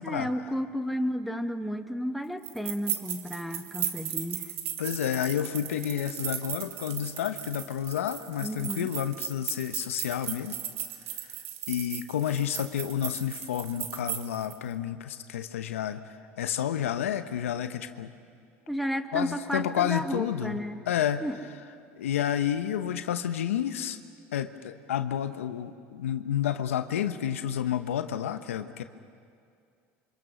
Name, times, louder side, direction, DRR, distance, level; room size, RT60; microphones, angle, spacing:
voice 1, 0.0-4.5 8.4-8.9 18.7-20.8 21.2-21.4, equal, ahead, 6 dB, 1.7 m, -32 dB
sound 1, 2.4-14.6, right 11 dB, 85° right, 1.5 m, -37 dB
voice 2, 4.8-10.5 11.7-16.0 16.4-18.1 19.1-20.6 20.9-21.2 22.0-24.0 24.3-28.8, left 10 dB, 90° left, 9 dB, 1.0 m, -30 dB
28.0 x 25.0 x 6.3 m, 2.3 s
hypercardioid pair, 80°, 7 cm